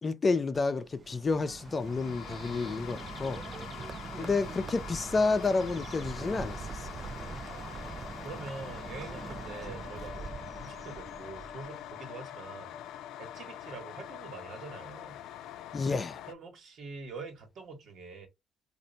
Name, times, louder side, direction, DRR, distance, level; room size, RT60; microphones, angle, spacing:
voice 1, 0.0-3.5 4.2-7.1 15.7-16.2, left 3 dB, 35° left, 0.5 m, -30 dB
Bird, 0.5-12.0, right 5 dB, 40° right, 0.4 m, -43 dB
sound 1, 1.6-16.3, left 11 dB, 90° left, 0.3 m, -45 dB
voice 2, 7.4-12.8 13.2-15.2 16.2-18.3, right 4 dB, 70° right, 1.4 m, -45 dB
3.2 x 2.6 x 4.0 m
cardioid pair, 90°, 0 cm